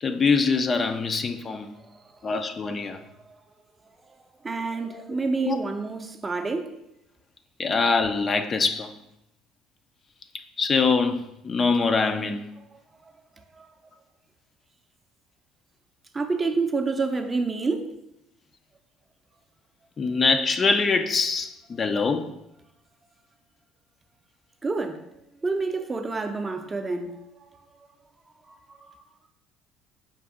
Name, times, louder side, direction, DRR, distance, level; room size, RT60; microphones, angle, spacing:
voice 1, 0.0-1.7 2.2-3.0 4.9-5.0 5.4-5.6 7.6-8.9 10.6-12.4 20.0-22.3, left 4 dB, 35° left, 0.3 m, -24 dB
voice 2, 1.7-2.2 2.9-3.4 4.1-6.7 12.7-13.7 16.1-17.9 24.6-25.0 25.3-27.5 27.8-27.9 28.4-28.9, right 3 dB, 20° right, 0.5 m, -29 dB
5.2 x 2.6 x 3.6 m
supercardioid pair, 100°, 0 cm